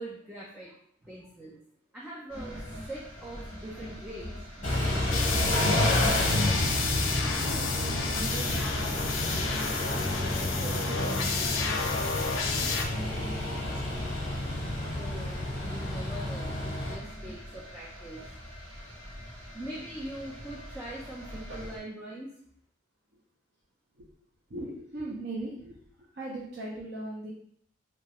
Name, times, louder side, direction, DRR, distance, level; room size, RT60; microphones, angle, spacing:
voice 1, 0.0-1.6 1.9-6.1 14.9-18.2 19.5-22.3, right 1 dB, 5° right, -6 dB, 0.4 m, -43 dB
sound 1, 2.3-21.8, equal, 80° right, 1.0 m, -43 dB
Car / Idling / Accelerating revving vroom, 4.6-17.0, left 1 dB, 40° left, 0.8 m, -30 dB
sound 2, 5.1-12.8, left 5 dB, 80° left, 0.4 m, -31 dB
voice 2, 7.3-12.0 12.6-13.8 23.1-23.2 24.0-24.1 24.5-27.3, right 2 dB, 55° right, -6 dB, 0.6 m, -41 dB
2.9 x 2.3 x 2.9 m, 0.65 s
head